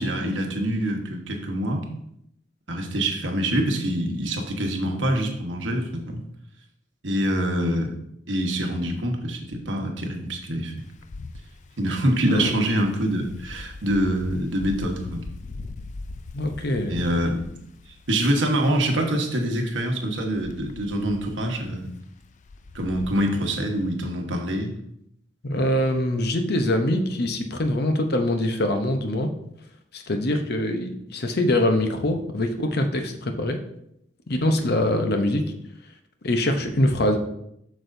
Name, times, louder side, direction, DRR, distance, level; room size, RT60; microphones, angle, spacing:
voice 1, 0.0-1.9 2.7-6.2 7.0-7.9 8.3-10.7 11.8-15.3 16.9-17.6 17.9-21.9 22.7-24.7, right 1 dB, 80° right, 3 dB, 1.2 m, -25 dB
Wind, 10.8-23.9, left 3 dB, 40° left, 0.4 m, -41 dB
voice 2, 16.3-17.1 25.4-29.3 29.9-33.6 34.3-35.4 36.2-37.2, left 1 dB, 60° left, 6 dB, 0.8 m, -23 dB
7.8 x 6.2 x 2.7 m, 0.76 s
head